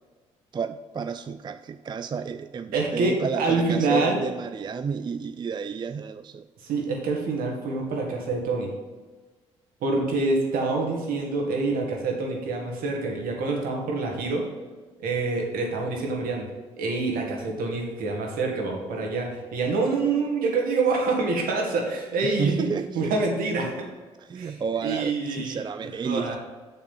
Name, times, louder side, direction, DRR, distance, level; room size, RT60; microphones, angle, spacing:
voice 1, 0.5-6.5 22.2-23.2 24.2-26.4, right 6 dB, 30° right, 10 dB, 0.4 m, -31 dB
voice 2, 2.7-4.2 6.6-8.7 9.8-14.5 15.0-16.5 16.8-22.7 23.0-23.9 24.3-25.6 26.0-26.4, right 3 dB, 70° right, 1 dB, 1.9 m, -26 dB
6.5 x 6.1 x 5.4 m, 1.3 s
hypercardioid pair, 55°, 15 cm